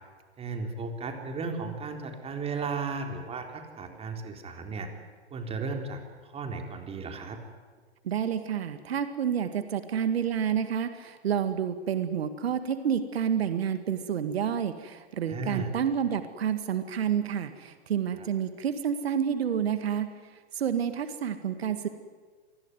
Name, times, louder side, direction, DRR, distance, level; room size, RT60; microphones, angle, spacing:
voice 1, 0.4-4.9 5.3-6.0 6.3-7.4 15.3-15.7 18.2-18.3, right 4 dB, 15° right, 4 dB, 3.8 m, -35 dB
voice 2, 8.0-20.1 20.5-21.9, right 8 dB, 65° right, 10 dB, 2.1 m, -29 dB
26.5 x 21.0 x 9.6 m, 1.5 s
figure-of-eight pair, 115°, 34 cm